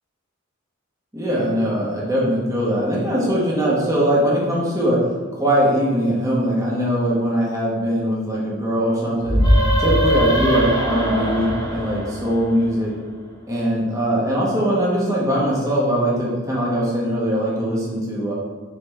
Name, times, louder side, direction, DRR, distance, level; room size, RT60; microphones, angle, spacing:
voice 1, 1.1-5.0 5.3-9.4 9.8-12.9 13.5-18.3, equal, 15° right, -6 dB, 1.5 m, -21 dB
sound 1, 9.2-12.8, equal, 20° left, 1.7 m, -20 dB
7.4 x 3.9 x 3.5 m, 1.3 s
head